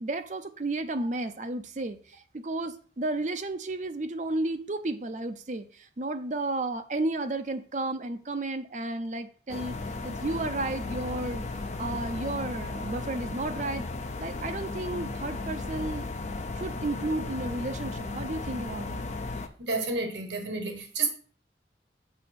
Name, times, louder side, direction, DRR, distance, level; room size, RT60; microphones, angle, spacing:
voice 1, 0.0-9.8 10.0-11.4 11.8-13.9 14.2-16.1 16.6-19.1, right 2 dB, 40° right, 0.6 m, -32 dB
sound 1, 9.5-19.5, left 3 dB, 40° left, 0.5 m, -35 dB
voice 2, 19.6-21.1, right 3 dB, 75° right, 1.3 m, -30 dB
7.0 x 5.4 x 4.2 m
head